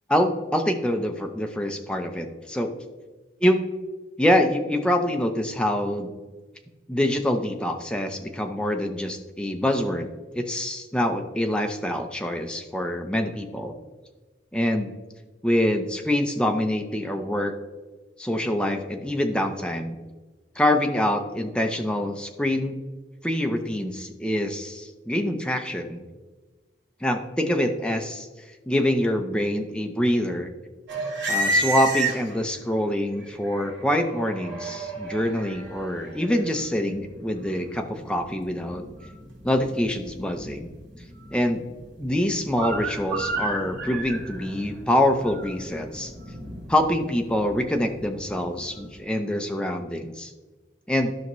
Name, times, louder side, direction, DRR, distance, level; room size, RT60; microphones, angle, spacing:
voice 1, 0.1-2.7 3.4-3.6 4.2-6.1 6.9-10.1 10.3-13.7 14.5-14.9 15.4-17.5 18.2-20.0 20.6-22.8 23.2-26.0 27.0-28.3 28.7-30.5 31.3-38.8 39.4-40.7 41.3-41.6 42.0-46.1 46.7-50.3 50.9-51.1, left 1 dB, 5° left, 4 dB, 0.6 m, -25 dB
sound 1, 30.9-32.6 33.2-49.0, right 1 dB, 80° right, 2.4 m, -33 dB
12.0 x 5.7 x 3.1 m, 1.3 s
head